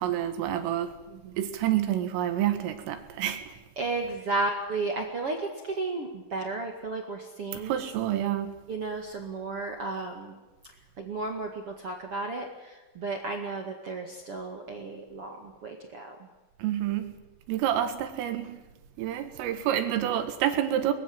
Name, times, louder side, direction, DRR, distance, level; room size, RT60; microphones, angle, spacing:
voice 1, 0.0-0.9 1.4-3.5 7.5-8.6 16.6-17.2 17.5-18.5 19.0-20.9, right 11 dB, 85° right, 8 dB, 4.3 m, -28 dB
voice 2, 1.1-1.4 3.7-7.8 8.7-10.4 11.0-16.1, right 3 dB, 55° right, 2 dB, 1.6 m, -33 dB
23.0 x 20.5 x 7.9 m, 1.1 s
omnidirectional pair, 5.8 m